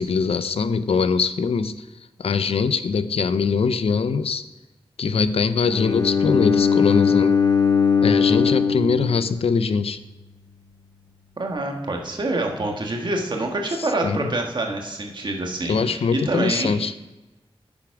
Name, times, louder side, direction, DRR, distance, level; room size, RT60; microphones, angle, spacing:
voice 1, 0.0-1.7 2.2-4.4 5.0-7.4 8.0-10.0 14.0-14.3 15.7-16.9, left 5 dB, 80° left, 13 dB, 0.5 m, -22 dB
Bowed string instrument, 5.7-9.8, left 6 dB, 40° left, 0.9 m, -20 dB
voice 2, 11.4-16.8, right 2 dB, 50° right, 2 dB, 1.5 m, -26 dB
9.8 x 7.2 x 4.8 m, 1.1 s
wide cardioid pair, 100°, 10 cm